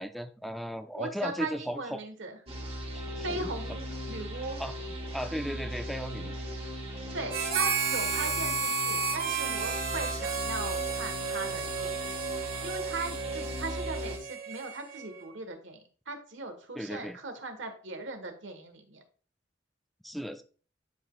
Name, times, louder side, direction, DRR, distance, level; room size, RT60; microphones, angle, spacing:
voice 1, 0.0-2.0 2.9-3.5 4.6-4.7 5.1-6.4 16.7-17.2 20.0-20.4, equal, ahead, 9 dB, 0.3 m, -36 dB
voice 2, 1.0-2.4 3.2-4.6 7.1-19.0, right 3 dB, 90° right, 7 dB, 1.4 m, -39 dB
sound 1, 2.5-14.2, equal, 30° right, 1.3 m, -38 dB
Harmonica, 7.3-15.0, right 5 dB, 50° right, 1.7 m, -32 dB
11.5 x 5.0 x 2.3 m, 0.40 s
head